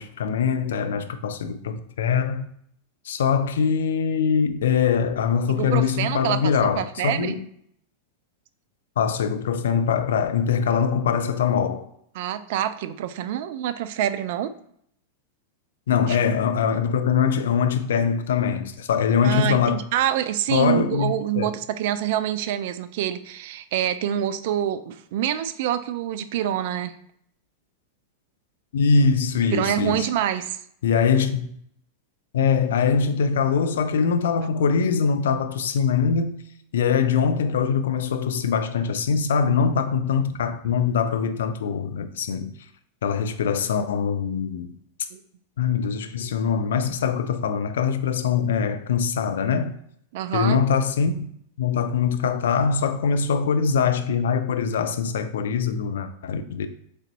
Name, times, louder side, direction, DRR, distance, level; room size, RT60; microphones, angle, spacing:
voice 1, 0.0-2.5 3.0-7.4 9.0-11.9 15.9-19.8 20.5-21.5 28.7-30.1 30.8-31.5 32.3-36.5 36.7-42.5 43.0-44.8 45.6-49.8 50.3-51.3 51.6-56.7, left 6 dB, 60° left, 0.4 m, -23 dB
voice 2, 5.5-7.3 12.2-14.5 16.1-16.2 19.2-26.9 29.5-30.6 45.1-45.2 50.1-50.6, right 11 dB, 50° right, 0.3 m, -26 dB
3.8 x 3.4 x 4.1 m
figure-of-eight pair, 90°, 0 cm